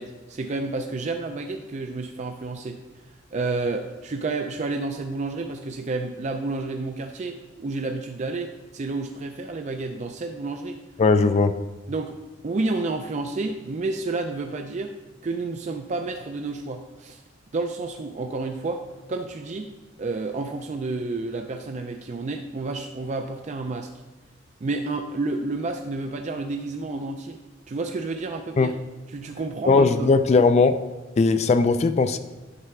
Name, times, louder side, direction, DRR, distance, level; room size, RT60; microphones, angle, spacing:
voice 1, 0.0-2.8 3.3-10.8 11.9-12.2 12.4-15.0 15.2-17.2 17.5-18.8 19.1-19.7 20.0-23.9 24.6-27.4 27.7-28.7 29.1-30.1, right 3 dB, 40° right, 4 dB, 0.4 m, -30 dB
voice 2, 11.0-11.5 28.6-28.7 29.7-30.8 31.2-32.2, left 4 dB, 35° left, 10 dB, 0.3 m, -18 dB
9.4 x 3.4 x 5.9 m, 1.2 s
head